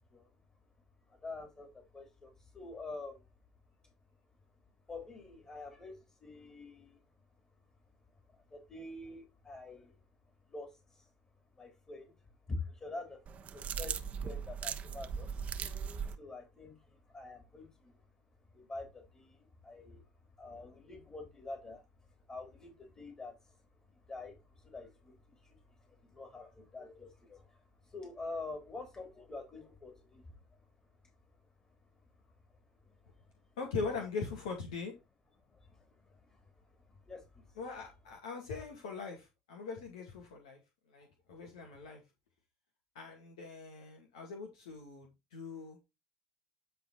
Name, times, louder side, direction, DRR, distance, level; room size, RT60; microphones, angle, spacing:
voice 1, 1.1-3.2 4.9-7.0 8.5-10.0 10.5-11.1 11.6-12.1 12.5-15.3 16.2-18.0 18.5-20.0 20.4-21.8 22.3-23.6 24.1-25.6 25.8-27.6 27.8-30.3 35.5-36.4 37.0-37.5, left 3 dB, 25° left, 3.3 m, -46 dB
sound 1, 13.3-16.2, right 7 dB, 40° right, 1.1 m, -39 dB
voice 2, 33.6-34.9 37.6-40.6 40.9-42.0 43.0-45.8, left 4 dB, 80° left, 2.0 m, -41 dB
10.5 x 4.2 x 4.0 m
hypercardioid pair, 75°, 3 cm